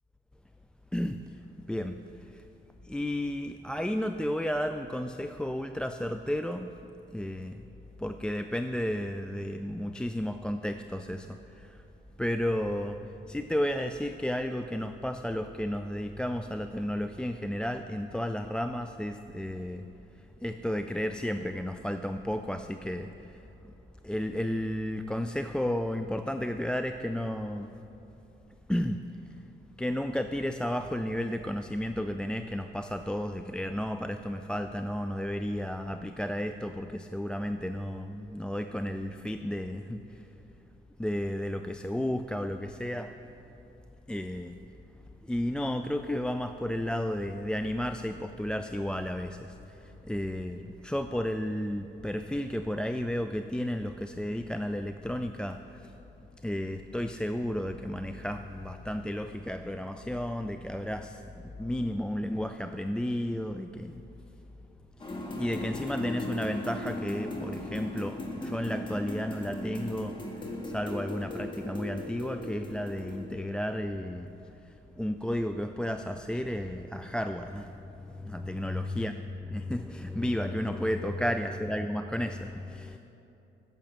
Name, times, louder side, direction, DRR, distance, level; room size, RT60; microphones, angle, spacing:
voice 1, 1.7-2.0 2.3-2.4 2.8-6.7 7.1-7.6 8.0-11.8 12.2-19.9 20.4-23.1 24.0-27.7 28.7-29.0 29.8-40.2 41.0-43.1 44.1-44.6 45.3-55.9 56.4-61.2 61.6-64.0 65.0-70.2 70.6-74.3 74.7-77.7 78.0-83.0, left 1 dB, 5° left, 7 dB, 0.3 m, -33 dB
sound 1, 65.0-73.3, left 1 dB, 25° left, 1.8 m, -38 dB
11.0 x 7.0 x 7.6 m, 3.0 s
cardioid pair, 90°, 20 cm